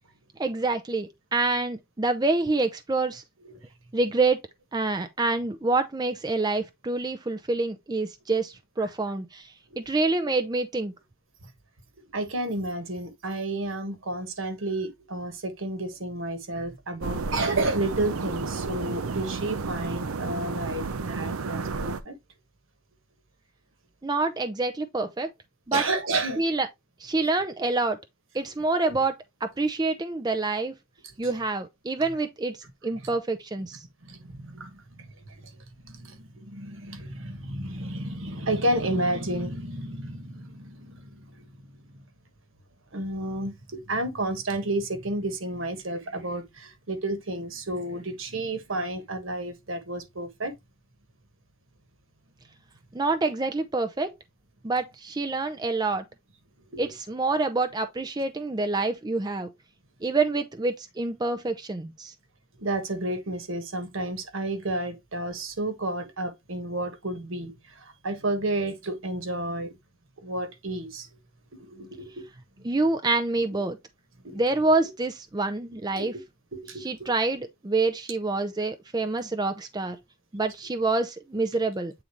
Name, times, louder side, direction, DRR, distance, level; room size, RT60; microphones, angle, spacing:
voice 1, 0.4-3.2 3.9-4.4 4.7-10.9 24.0-25.3 25.7-25.8 26.4-26.7 27.0-28.0 28.3-29.2 29.4-30.7 31.2-32.6 32.8-33.8 52.9-54.1 54.6-56.0 56.8-59.5 60.0-62.1 72.6-73.8 74.3-76.1 76.8-80.0 80.3-81.9, right 3 dB, 20° right, 0.5 m, -27 dB
voice 2, 12.1-22.2 25.7-26.4 34.0-35.1 35.4-35.5 35.8-41.4 42.9-50.5 56.7-56.8 62.6-67.5 67.8-69.7 70.2-71.1 71.6-72.3 74.2-74.4 75.9-76.1 76.5-77.1, right 2 dB, 65° right, 1.3 m, -31 dB
sound 1, 17.0-22.0, right 4 dB, 85° right, 0.6 m, -32 dB
8.4 x 3.9 x 3.0 m
head